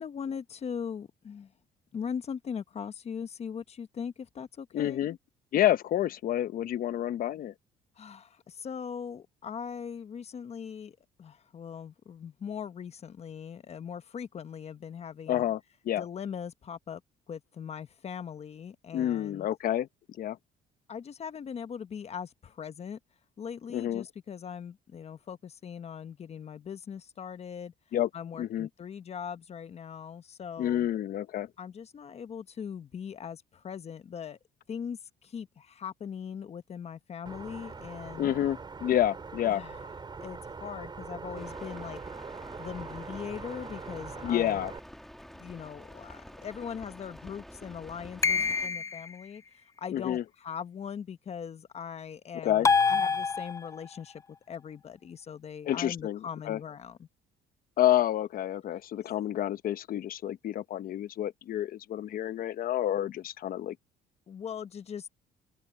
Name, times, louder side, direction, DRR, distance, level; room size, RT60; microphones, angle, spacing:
voice 1, 0.0-1.5 1.9-5.0 8.0-15.4 16.0-17.0 17.3-19.5 20.9-23.0 23.4-27.7 28.1-30.9 31.6-34.4 34.7-38.3 39.5-39.9 40.2-42.0 42.6-44.6 45.3-49.4 49.8-54.2 54.5-57.1 64.3-65.1, left 7 dB, 40° left, 1.2 m, -40 dB
voice 2, 4.7-5.2 5.5-7.5 15.3-15.6 15.8-16.0 18.9-19.9 20.2-20.4 23.7-24.0 27.9-28.1 28.4-28.7 30.6-31.5 38.2-39.6 44.2-44.7 49.9-50.2 52.4-52.7 55.7-56.2 56.5-56.6 57.8-63.7, left 12 dB, 60° left, 0.9 m, -29 dB
sound 1, 37.3-44.8, right 4 dB, 25° right, 4.0 m, -42 dB
sound 2, 41.3-48.7, equal, ahead, 2.6 m, -48 dB
sound 3, 48.2-49.1 52.6-53.9, left 5 dB, 20° left, 0.4 m, -26 dB
cardioid pair, 110°, 17 cm